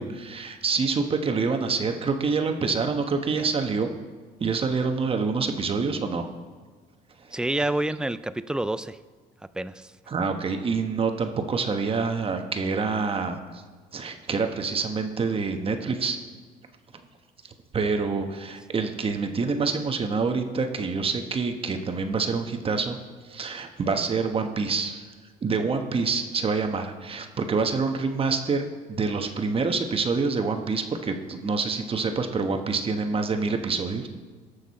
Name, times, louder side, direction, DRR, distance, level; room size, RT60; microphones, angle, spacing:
voice 1, 0.0-3.9 4.4-6.3 7.2-7.4 10.1-13.4 13.9-16.2 17.7-23.0 23.2-25.0 25.4-34.1, right 4 dB, 35° right, 6 dB, 1.2 m, -26 dB
voice 2, 7.3-9.0 9.5-9.9, right 1 dB, 5° right, 14 dB, 0.4 m, -28 dB
19.0 x 6.5 x 4.2 m, 1.5 s
cardioid pair, 110°, 17 cm